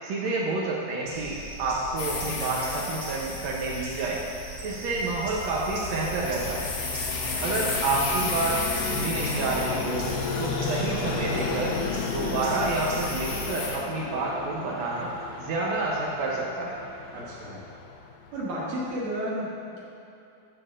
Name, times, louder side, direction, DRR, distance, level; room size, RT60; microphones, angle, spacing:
voice 1, 0.0-4.2 4.6-6.7 7.4-10.0 10.4-11.8 12.0-15.1 15.4-16.7, right 3 dB, 85° right, -4 dB, 1.5 m, -29 dB
sound 1, 1.0-13.5, right 1 dB, 50° right, 1.9 m, -39 dB
Ape Creatures, 2.0-13.8, left 4 dB, 60° left, 2.0 m, -35 dB
Vehicle, 4.3-19.0, left 5 dB, 80° left, 2.2 m, -35 dB
voice 2, 7.3-7.7 17.1-17.6 18.3-19.8, equal, 65° right, -8 dB, 3.6 m, -33 dB
15.0 x 6.9 x 2.5 m, 2.7 s
omnidirectional pair, 4.2 m